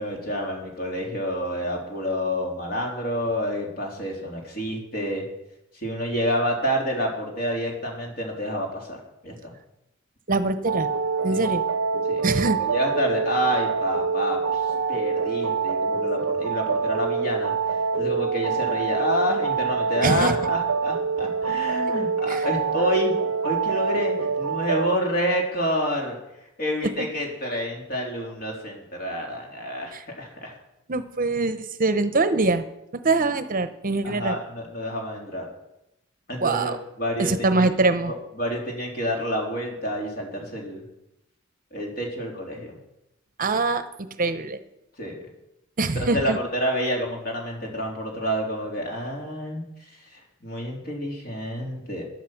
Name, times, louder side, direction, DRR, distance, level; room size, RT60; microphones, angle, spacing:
voice 1, 0.0-5.2 5.8-9.0 9.2-9.5 11.3-11.4 12.1-14.6 14.9-17.5 18.0-23.1 23.4-26.2 26.6-30.6 34.0-35.5 36.3-37.7 38.1-40.8 41.7-42.8 45.0-45.3 46.0-49.6 50.1-52.0, equal, 45° left, 0 dB, 3.7 m, -28 dB
voice 2, 10.3-10.9 11.2-11.6 12.2-12.6 20.0-20.3 22.3-22.5 29.9-30.0 30.9-32.6 33.0-34.4 36.4-36.8 37.2-38.1 43.4-43.8 44.2-44.6 45.8-46.4, right 3 dB, 45° right, 11 dB, 0.9 m, -23 dB
sound 1, 10.7-24.9, right 5 dB, 85° right, 0.7 m, -25 dB
14.0 x 11.0 x 6.0 m, 0.87 s
head